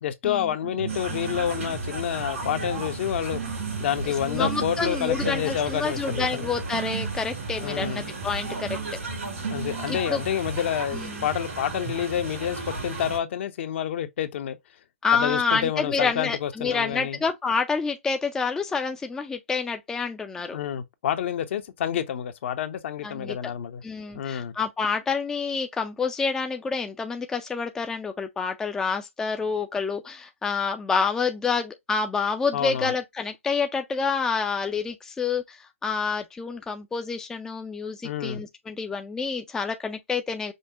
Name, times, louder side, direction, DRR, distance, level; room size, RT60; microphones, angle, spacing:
voice 1, 0.0-3.4 3.8-6.5 7.6-8.0 9.5-14.6 15.1-17.2 20.4-23.8 24.1-24.5 32.5-32.9 38.0-38.4, left 9 dB, 55° left, 0.8 m, -28 dB
sound 1, 0.6-1.9 2.2-10.3, right 7 dB, 60° right, 0.5 m, -36 dB
sound 2, 0.9-13.2, right 3 dB, 80° right, 2.8 m, -34 dB
voice 2, 4.0-8.7 9.9-10.2 10.9-11.3 15.0-20.6 23.0-23.4 23.8-40.5, left 5 dB, 10° left, 0.4 m, -28 dB
5.3 x 2.1 x 3.6 m
hypercardioid pair, 135°, 7 cm